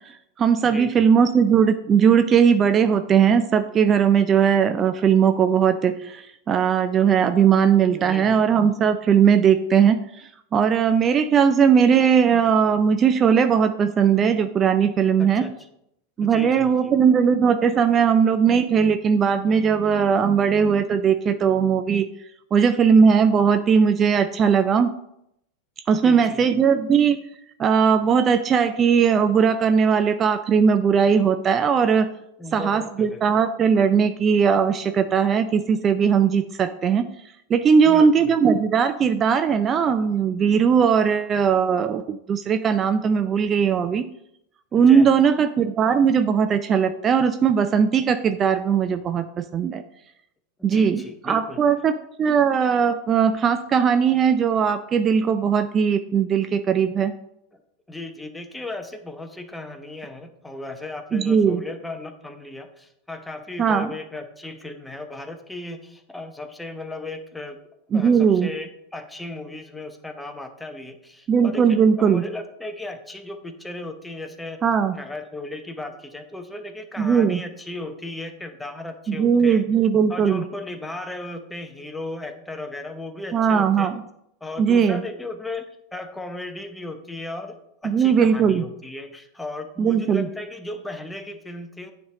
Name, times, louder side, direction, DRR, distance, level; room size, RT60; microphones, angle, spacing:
voice 1, 0.1-15.5 16.2-22.1 22.5-24.9 25.9-27.2 27.6-32.1 32.5-37.1 37.5-44.0 44.7-49.8 50.6-51.9 52.2-57.1 61.1-61.6 63.6-63.9 67.9-68.5 71.3-72.2 74.6-75.0 77.0-77.4 79.1-80.4 83.3-84.0 84.6-85.0 87.8-88.6 89.8-90.3, right 7 dB, 30° right, 9 dB, 0.4 m, -19 dB
voice 2, 0.6-1.1 7.8-8.4 15.2-15.5 16.2-16.9 26.0-26.6 32.4-33.3 37.8-38.3 44.7-45.1 50.6-51.6 57.5-57.6 57.9-67.6 67.9-74.6 74.9-79.7 80.1-83.9 84.4-87.5 87.8-91.9, left 2 dB, 10° left, 7 dB, 0.8 m, -36 dB
9.3 x 3.6 x 3.8 m, 0.78 s
hypercardioid pair, 90°, 0 cm